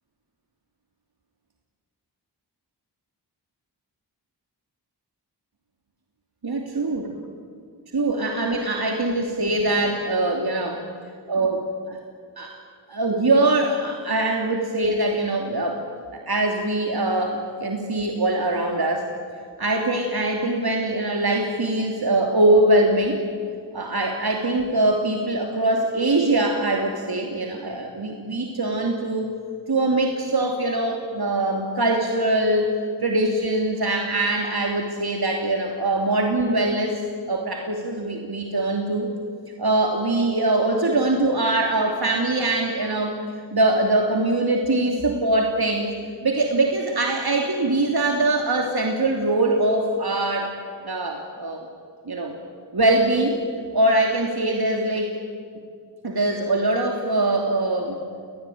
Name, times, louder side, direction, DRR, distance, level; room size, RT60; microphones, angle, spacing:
voice 1, 6.4-7.1 7.9-10.8 11.3-12.0 12.4-12.6 12.9-15.8 16.1-19.1 19.6-23.2 23.7-29.3 29.7-32.7 33.0-39.1 39.6-43.2 43.5-45.9 46.2-50.5 50.8-51.6 52.1-52.3 52.7-53.4 53.7-55.2 56.0-58.0, right 2 dB, 60° right, 2 dB, 3.1 m, -22 dB
29.0 x 21.5 x 9.4 m, 2.2 s
cardioid pair, 40°, 42 cm